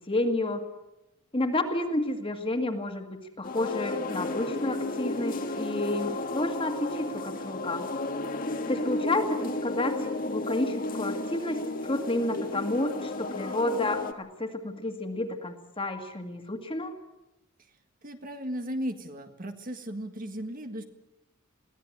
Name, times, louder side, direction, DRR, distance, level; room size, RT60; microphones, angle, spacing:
voice 1, 0.1-0.7 1.3-7.9 8.7-16.9, left 2 dB, 25° left, 5 dB, 2.1 m, -30 dB
sound 1, 3.4-14.1, left 2 dB, 40° left, 1.6 m, -33 dB
voice 2, 18.0-20.8, equal, 40° right, 6 dB, 1.8 m, -36 dB
22.5 x 17.0 x 8.6 m, 0.98 s
head